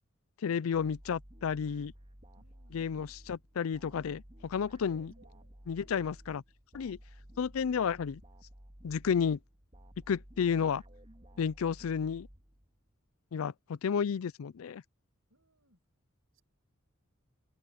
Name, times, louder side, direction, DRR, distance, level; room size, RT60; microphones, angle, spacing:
voice 1, 0.4-1.9 2.7-5.1 5.7-6.4 6.7-7.0 7.4-8.2 8.8-9.4 10.1-10.8 11.4-12.3 13.3-14.8, left 7 dB, 85° left, 0.4 m, -32 dB
sound 1, 0.7-12.9, equal, 30° right, 2.4 m, -54 dB
voice 2, 2.3-3.1 5.2-5.5 15.3-15.8 16.3-16.4, right 1 dB, 80° right, 6.5 m, -68 dB
head